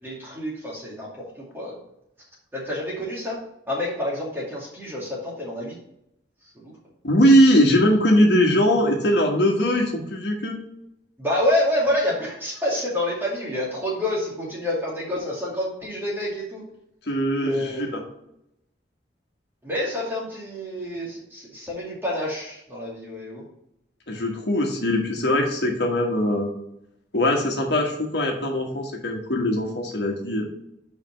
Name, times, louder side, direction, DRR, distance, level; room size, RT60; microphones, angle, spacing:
voice 1, 0.0-1.8 2.5-3.4 3.7-5.8 6.5-6.7 11.2-16.6 17.4-18.0 19.6-23.4, left 1 dB, 10° right, -4 dB, 2.4 m, -28 dB
voice 2, 7.0-10.6 17.1-18.0 24.1-26.5 27.1-30.5, equal, 65° left, 1 dB, 1.5 m, -21 dB
5.1 x 5.0 x 6.2 m, 0.77 s
head